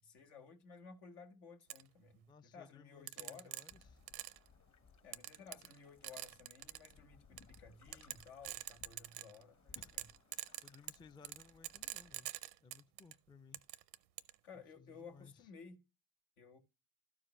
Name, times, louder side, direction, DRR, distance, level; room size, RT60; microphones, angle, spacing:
voice 1, 0.0-3.6 5.0-10.1 14.4-15.8 16.4-16.6, left 5 dB, 80° left, 1.5 m, -56 dB
sound 1, 1.7-1.8 3.1-4.5 5.1-5.8 6.0-6.9 7.4-7.6 7.9-9.4 9.7-13.1 13.5-14.3, right 16 dB, 80° right, 0.6 m, -45 dB
voice 2, 2.3-4.0 9.8-9.9 10.6-12.3 12.6-13.6 14.8-15.5, left 5 dB, 10° left, 0.3 m, -61 dB
sound 2, 3.7-12.2, left 5 dB, 35° left, 1.1 m, -65 dB
12.0 x 4.9 x 3.0 m
hypercardioid pair, 60°, 48 cm